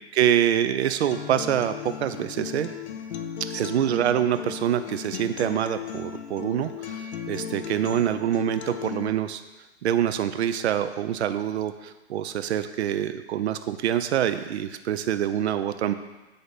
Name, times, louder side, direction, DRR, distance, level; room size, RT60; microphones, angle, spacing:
voice 1, 0.1-2.7 3.5-9.4 9.8-15.9, right 10 dB, 80° right, 11 dB, 0.5 m, -25 dB
Acoustic guitar, 1.1-9.1, left 8 dB, 75° left, 0.7 m, -36 dB
9.3 x 3.4 x 3.9 m, 1.1 s
hypercardioid pair, 125°, 33 cm